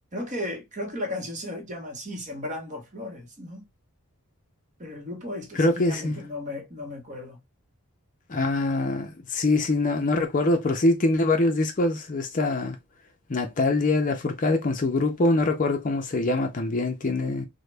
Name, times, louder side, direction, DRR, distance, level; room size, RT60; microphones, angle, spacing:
voice 1, 0.1-3.7 4.8-7.4, left 1 dB, 35° right, 0.9 m, -35 dB
voice 2, 5.6-6.2 8.3-12.8 13.3-17.4, left 2 dB, 35° left, 0.5 m, -24 dB
3.0 x 2.1 x 3.2 m
head